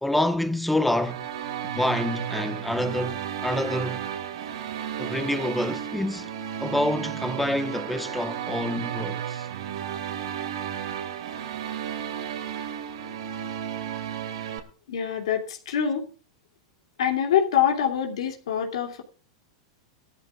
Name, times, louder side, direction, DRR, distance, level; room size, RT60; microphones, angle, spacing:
voice 1, 0.0-1.3 1.7-4.0 5.0-6.3 6.6-9.5, left 1 dB, 5° left, 1.2 m, -27 dB
sound 1, 0.9-14.6, right 9 dB, 80° right, 2.4 m, -33 dB
voice 2, 14.9-16.1 17.0-19.0, left 9 dB, 85° left, 2.7 m, -25 dB
19.0 x 13.0 x 2.4 m
supercardioid pair, 140°, 3 cm